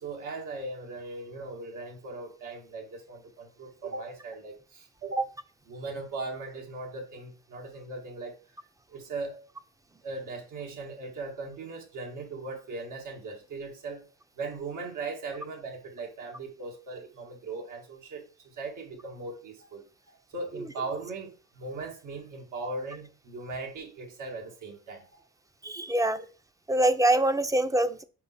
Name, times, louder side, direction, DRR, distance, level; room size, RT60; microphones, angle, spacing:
voice 1, 0.0-5.2 5.7-8.4 8.9-9.4 10.0-14.1 14.3-25.2, right 3 dB, 85° right, 0 dB, 2.1 m, -39 dB
voice 2, 25.6-26.2 26.7-28.0, right 1 dB, 10° right, 11 dB, 0.5 m, -24 dB
5.5 x 4.6 x 4.2 m, 0.36 s
cardioid pair, 90°, 30 cm